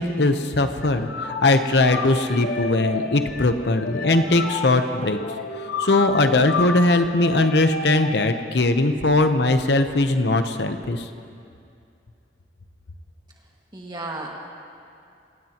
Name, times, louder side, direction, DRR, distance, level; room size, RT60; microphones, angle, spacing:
voice 1, 0.0-5.2 5.8-11.1, left 2 dB, 70° left, 8 dB, 0.9 m, -20 dB
sound 1, 0.8-8.1, left 3 dB, 55° left, 1.1 m, -30 dB
voice 2, 13.7-14.5, right 2 dB, 25° right, -1 dB, 1.9 m, -34 dB
26.5 x 17.5 x 3.0 m, 2.5 s
head